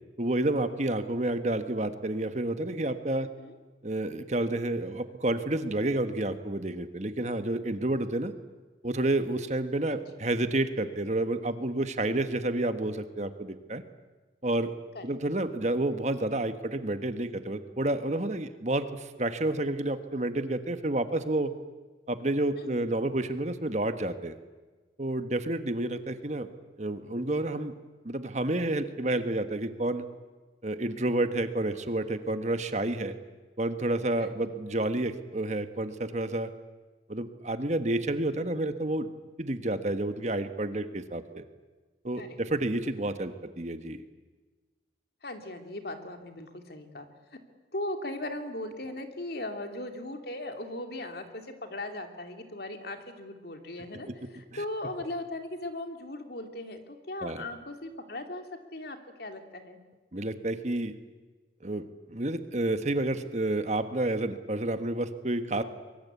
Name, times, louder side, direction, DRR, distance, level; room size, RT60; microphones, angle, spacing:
voice 1, 0.2-3.3 3.8-8.3 8.8-13.8 14.4-14.7 15.0-21.5 22.1-24.3 25.0-26.5 26.8-27.7 28.0-30.0 30.6-33.2 33.6-36.5 37.1-39.1 39.4-41.4 42.0-44.0 54.5-54.6 57.2-57.4 60.1-60.9 61.6-65.6, right 1 dB, 40° right, 9 dB, 1.4 m, -30 dB
voice 2, 3.2-3.6 9.9-10.0 14.9-15.2 22.6-22.9 34.2-34.4 42.2-42.4 45.2-47.1 47.7-58.4 58.7-59.8, left 1 dB, 55° left, 6 dB, 2.8 m, -38 dB
24.0 x 23.0 x 8.4 m, 1.3 s
head